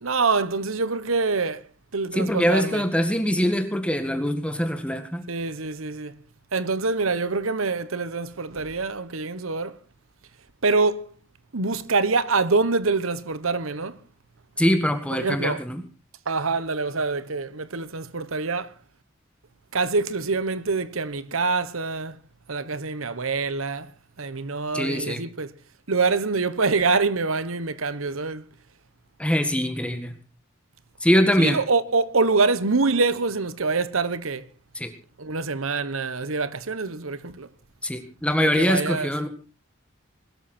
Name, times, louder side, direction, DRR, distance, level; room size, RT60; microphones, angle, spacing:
voice 1, 0.0-1.6 1.9-2.8 5.3-6.1 6.5-9.7 10.6-11.1 11.5-14.0 15.2-15.6 16.3-18.7 19.7-22.2 22.5-23.9 24.2-25.5 25.9-28.4 31.4-34.4 35.2-37.5 38.4-39.1, right 4 dB, 90° right, 1.2 m, -25 dB
voice 2, 2.1-5.2 14.6-15.8 24.7-25.2 29.2-30.1 31.0-31.6 34.8-34.9 37.8-39.3, equal, 5° left, 1.7 m, -23 dB
21.0 x 13.0 x 4.4 m
head